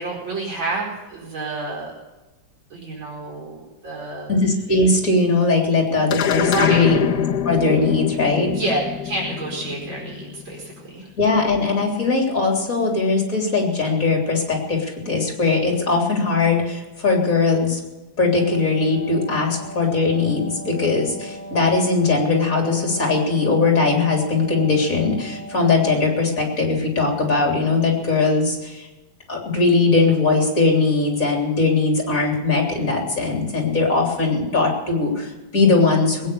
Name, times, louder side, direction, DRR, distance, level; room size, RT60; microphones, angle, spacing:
voice 1, 0.0-1.9 2.7-4.3 6.3-6.9 8.5-11.1, right 2 dB, 90° right, -4 dB, 5.6 m, -29 dB
voice 2, 4.3-8.5 11.2-17.8 18.2-28.9 29.3-36.3, left 3 dB, 45° left, 0 dB, 3.9 m, -20 dB
sound 1, 6.1-10.7, left 9 dB, 60° left, 1.4 m, -25 dB
Wind instrument woodwind instrument, 18.2-26.2, left 1 dB, 25° right, 4.4 m, -38 dB
20.5 x 9.6 x 6.9 m, 1.1 s
omnidirectional pair, 2.1 m